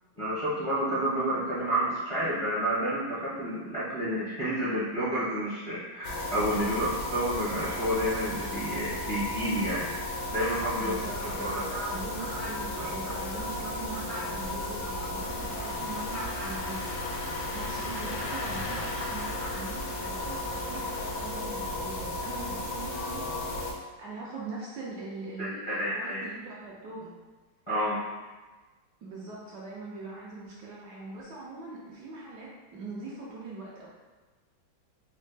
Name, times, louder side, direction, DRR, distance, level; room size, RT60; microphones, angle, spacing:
voice 1, 0.2-9.8 10.3-11.9 12.2-12.5 14.1-14.2 16.1-16.5 19.0-19.1 25.4-26.2 27.7-28.0, right 1 dB, 40° left, -11 dB, 0.4 m, -30 dB
sound 1, 6.0-23.7, left 2 dB, 90° left, 1.5 m, -34 dB
voice 2, 10.8-27.1 29.0-33.9, right 3 dB, 70° right, -5 dB, 1.0 m, -42 dB
Engine starting, 15.2-21.3, left 2 dB, 70° left, 0.9 m, -41 dB
4.1 x 2.1 x 3.2 m, 1.3 s
omnidirectional pair, 2.2 m